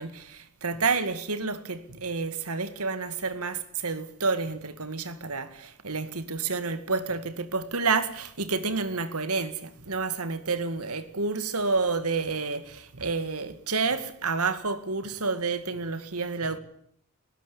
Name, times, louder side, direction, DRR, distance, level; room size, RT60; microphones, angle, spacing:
voice 1, 0.0-16.6, right 4 dB, 80° right, 2.1 m, -29 dB
20.0 x 17.5 x 9.8 m
head